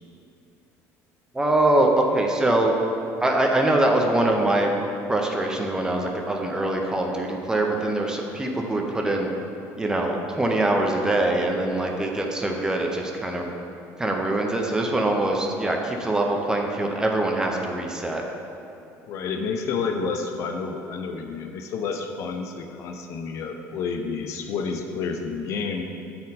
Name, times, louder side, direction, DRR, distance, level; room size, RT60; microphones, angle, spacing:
voice 1, 1.3-2.7 3.2-4.7 5.1-9.3 9.8-13.5 14.0-18.2, right 1 dB, 10° right, 1 dB, 0.6 m, -23 dB
voice 2, 19.1-25.8, left 5 dB, 55° left, 5 dB, 0.6 m, -30 dB
8.4 x 4.4 x 4.0 m, 2.8 s
cardioid pair, 135°, 6 cm